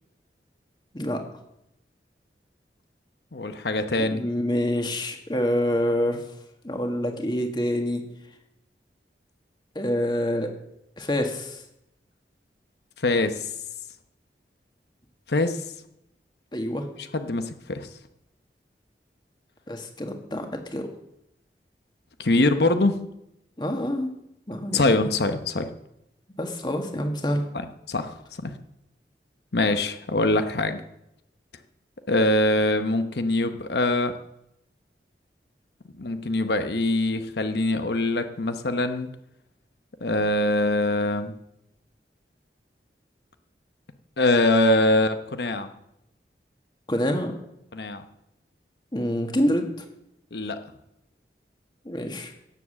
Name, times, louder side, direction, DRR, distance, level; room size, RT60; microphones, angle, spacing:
voice 1, 3.3-4.2 13.0-13.5 15.3-15.6 17.1-17.9 22.2-23.0 24.7-25.7 27.9-28.5 29.5-30.8 32.1-34.1 36.0-39.1 40.0-41.3 44.2-45.7 47.7-48.0 50.3-50.6, left 2 dB, 70° left, 9 dB, 0.9 m, -23 dB
voice 2, 4.0-6.2 6.6-8.0 9.8-10.5 11.0-11.6 16.5-16.9 19.7-20.9 23.6-24.1 24.5-24.9 26.4-27.4 46.9-47.3 48.9-49.9 51.9-52.3, equal, 25° left, 4 dB, 1.7 m, -26 dB
16.5 x 7.3 x 7.4 m, 0.83 s
head